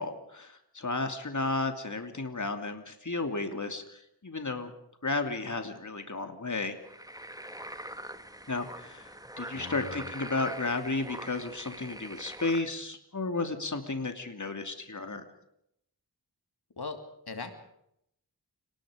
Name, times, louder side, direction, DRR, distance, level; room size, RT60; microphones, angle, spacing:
voice 1, 0.0-4.7 5.0-6.8 8.5-15.2, left 3 dB, 50° left, 6 dB, 2.9 m, -33 dB
sound 1, 6.8-12.6, right 1 dB, 10° right, 2.2 m, -43 dB
voice 2, 9.5-10.1 16.8-17.0 17.3-17.5, left 3 dB, 75° left, 6 dB, 2.9 m, -39 dB
30.0 x 20.0 x 5.2 m, 0.75 s
wide cardioid pair, 50°, 39 cm